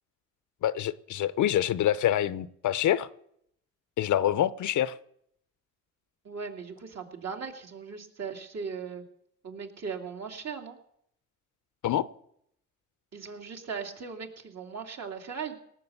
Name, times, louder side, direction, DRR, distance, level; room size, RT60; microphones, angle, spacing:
voice 1, 0.6-3.1 4.0-4.9 11.8-12.1, left 11 dB, 65° left, 0.7 m, -26 dB
voice 2, 6.2-9.0 9.4-10.8 13.1-15.6, right 5 dB, 55° right, 2.5 m, -38 dB
18.0 x 6.6 x 8.1 m
supercardioid pair, 70°, 32 cm